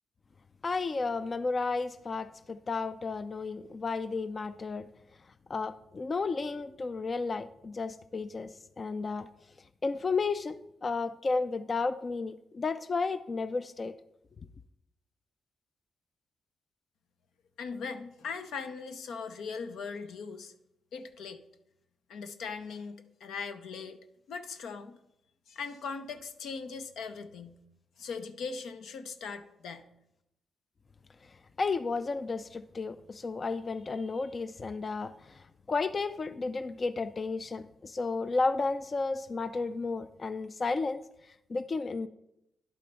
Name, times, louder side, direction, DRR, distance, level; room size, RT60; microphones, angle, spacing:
voice 1, 0.6-4.9 5.5-9.3 9.8-13.9 31.6-42.1, left 4 dB, 35° left, 13 dB, 0.3 m, -33 dB
voice 2, 17.6-20.5 20.9-21.4 22.1-24.0 24.3-25.0 25.5-27.5 28.0-29.8, left 5 dB, 85° left, 9 dB, 0.7 m, -40 dB
11.0 x 4.4 x 5.3 m, 0.83 s
cardioid pair, 100°, 0 cm